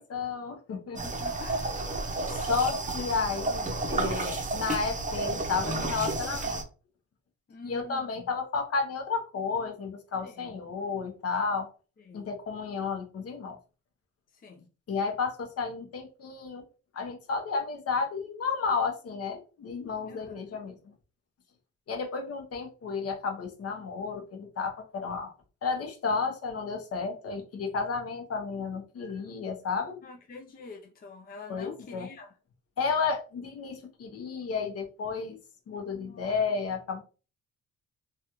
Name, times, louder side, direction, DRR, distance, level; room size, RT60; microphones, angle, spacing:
voice 1, 0.0-1.0 2.3-6.6 7.6-11.7 12.1-13.6 14.9-16.6 16.9-20.8 21.9-25.3 25.6-30.0 31.5-32.1 32.8-35.4 35.7-37.0, left 5 dB, 50° left, 0.9 m, -32 dB
voice 2, 1.0-1.9 7.5-8.3 10.2-10.6 12.0-12.3 14.3-14.7 20.0-20.6 30.0-32.3 35.9-36.3, left 4 dB, 30° left, 0.5 m, -46 dB
sound 1, 1.0-6.6, right 2 dB, 25° right, 0.7 m, -31 dB
3.2 x 2.4 x 2.8 m
cardioid pair, 90°, 30 cm